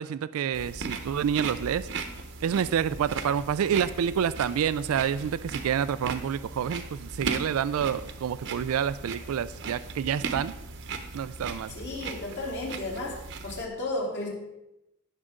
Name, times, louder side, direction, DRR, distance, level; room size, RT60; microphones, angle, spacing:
voice 1, 0.0-1.9 2.4-10.5 11.1-11.7, right 8 dB, 75° right, 15 dB, 0.3 m, -28 dB
sound 1, 0.5-13.7, right 4 dB, 55° right, 0.9 m, -38 dB
voice 2, 11.7-13.1 13.4-14.3, left 2 dB, 55° left, -3 dB, 3.1 m, -33 dB
17.5 x 6.4 x 3.7 m, 0.90 s
head